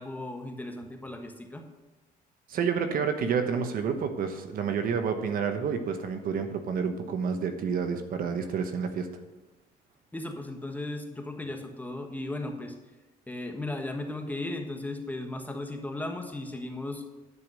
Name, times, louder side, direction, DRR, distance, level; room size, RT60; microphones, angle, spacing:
voice 1, 0.0-1.6 10.1-12.7 13.3-17.0, left 2 dB, 10° left, 3 dB, 1.3 m, -36 dB
voice 2, 2.5-9.1, right 6 dB, 60° right, 7 dB, 1.1 m, -29 dB
11.0 x 5.1 x 6.3 m, 1.2 s
cardioid pair, 110°, 17 cm